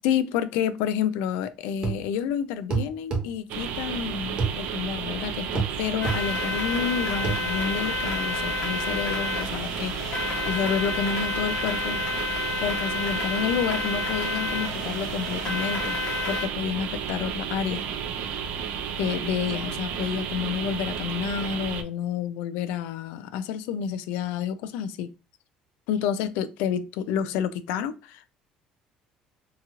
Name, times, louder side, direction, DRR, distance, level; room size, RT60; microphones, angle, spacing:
voice 1, 0.0-12.0 12.6-16.0 16.3-17.9 19.0-25.1 25.9-28.3, left 8 dB, 90° left, 0.3 m, -29 dB
sound 1, 1.8-2.0 2.7-3.3 4.4-4.6 5.5-5.7 6.0-6.2 7.2-7.4, right 5 dB, 35° right, 0.7 m, -26 dB
sound 2, 3.5-21.8, right 7 dB, 70° right, 0.4 m, -32 dB
sound 3, 6.0-16.5, left 3 dB, 55° left, 1.0 m, -30 dB
2.8 x 2.3 x 2.8 m
cardioid pair, 130°, 3 cm